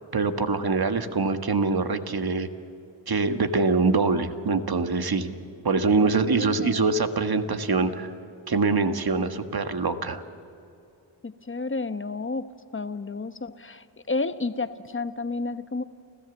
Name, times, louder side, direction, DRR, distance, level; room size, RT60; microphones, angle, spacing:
voice 1, 0.1-2.5 3.1-5.3 5.6-8.1 8.5-10.2, right 4 dB, 50° right, 8 dB, 1.6 m, -24 dB
voice 2, 6.3-6.8 11.2-12.5 12.7-15.8, left 3 dB, 25° left, 11 dB, 1.1 m, -31 dB
30.0 x 14.5 x 7.2 m, 2.7 s
cardioid pair, 50°, 49 cm